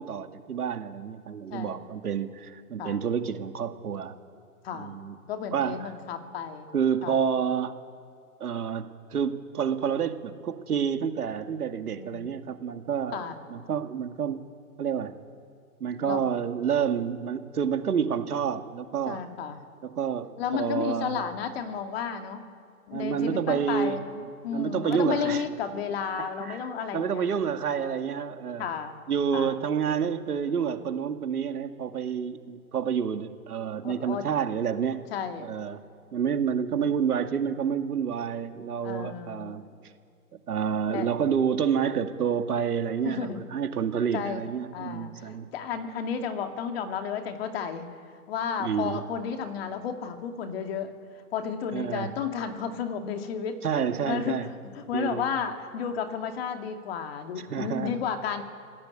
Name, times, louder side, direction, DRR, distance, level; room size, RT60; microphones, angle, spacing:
voice 1, 0.0-4.1 4.7-5.2 5.5-5.9 6.7-7.8 8.4-14.4 14.8-15.2 15.8-19.2 19.8-21.2 22.9-24.0 24.5-25.4 26.2-26.7 26.9-28.7 29.1-35.0 35.4-35.8 36.1-39.7 40.5-45.5 48.6-49.0 51.7-52.1 53.6-54.5 54.9-55.2 57.5-57.9, right 7 dB, 80° right, 7 dB, 2.3 m, -29 dB
voice 2, 5.3-6.7 7.0-7.2 12.0-12.3 13.1-13.4 16.0-16.2 19.1-19.6 20.4-22.4 22.9-27.2 28.6-29.0 29.3-29.6 33.8-34.2 35.1-35.5 38.8-39.8 40.9-41.1 43.0-43.4 44.1-44.4 44.7-47.9 48.3-50.9 51.3-53.6 54.0-54.4 54.8-58.4, left 7 dB, 40° left, 5 dB, 2.5 m, -32 dB
26.0 x 17.0 x 9.0 m, 2.3 s
hypercardioid pair, 155°, 45 cm